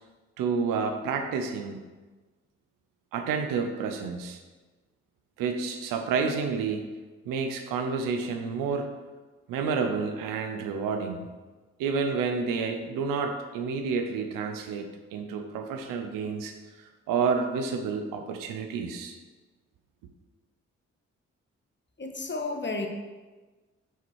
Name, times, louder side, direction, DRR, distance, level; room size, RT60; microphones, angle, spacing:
voice 1, 0.4-1.8 3.1-4.4 5.4-6.9 7.3-8.9 9.5-11.2 11.8-19.2, right 5 dB, 90° right, 6 dB, 0.7 m, -30 dB
voice 2, 22.0-22.9, left 3 dB, 35° left, 4 dB, 1.4 m, -32 dB
5.9 x 4.4 x 6.2 m, 1.3 s
supercardioid pair, 40°, 32 cm